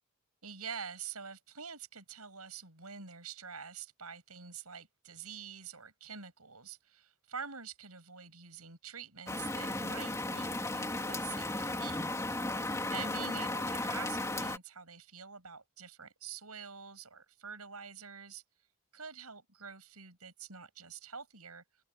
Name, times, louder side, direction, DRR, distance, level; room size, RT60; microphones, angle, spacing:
voice 1, 0.4-12.1 12.9-18.4 18.9-21.6, right 6 dB, 80° right, 7.5 m, -46 dB
Rain, 9.3-14.6, left 2 dB, 15° left, 3.2 m, -35 dB
open air
head